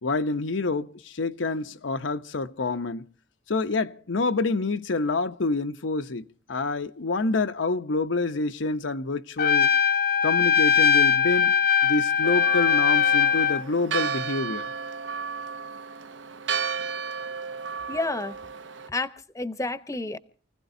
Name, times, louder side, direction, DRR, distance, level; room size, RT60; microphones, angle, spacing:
voice 1, 0.0-3.0 3.5-9.7 10.2-11.6 11.8-14.7, left 3 dB, 85° left, 0.8 m, -27 dB
Trumpet, 9.4-13.6, left 7 dB, 55° left, 0.7 m, -21 dB
Church bell, 12.2-18.9, right 6 dB, 80° right, 0.8 m, -33 dB
voice 2, 17.9-18.3 18.9-20.2, left 2 dB, 15° left, 0.8 m, -30 dB
29.0 x 16.5 x 2.7 m
head